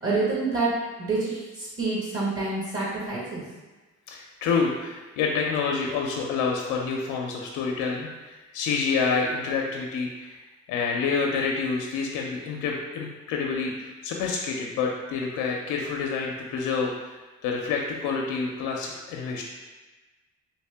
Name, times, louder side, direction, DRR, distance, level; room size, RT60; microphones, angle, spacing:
voice 1, 0.0-0.7 1.0-3.4, right 3 dB, 45° right, -6 dB, 1.1 m, -27 dB
voice 2, 4.1-10.4 10.7-16.9 17.4-19.4, left 5 dB, 90° left, 0 dB, 0.5 m, -28 dB
3.0 x 2.8 x 3.3 m, 1.2 s
cardioid pair, 90°, 30 cm